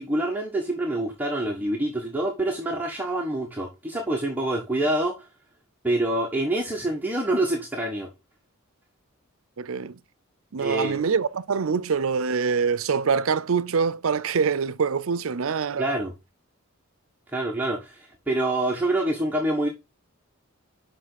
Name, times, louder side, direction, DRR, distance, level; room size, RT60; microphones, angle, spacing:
voice 1, 0.0-5.3 5.8-8.1 10.6-11.0 15.8-16.1 17.3-19.7, right 1 dB, 10° right, 1.4 m, -26 dB
voice 2, 9.6-10.0 10.5-15.9, right 5 dB, 70° right, 0.5 m, -25 dB
7.5 x 5.7 x 4.0 m
head